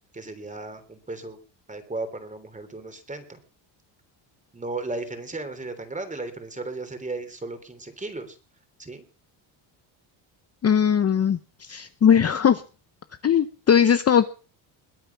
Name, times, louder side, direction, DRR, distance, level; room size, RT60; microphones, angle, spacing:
voice 1, 0.1-1.4 1.7-3.4 4.5-8.4 8.8-9.0, right 2 dB, 15° right, 9 dB, 3.3 m, -35 dB
voice 2, 10.6-12.6 13.2-14.3, left 8 dB, 30° left, 11 dB, 0.8 m, -19 dB
21.5 x 8.7 x 5.9 m, 0.38 s
cardioid pair, 110°, 49 cm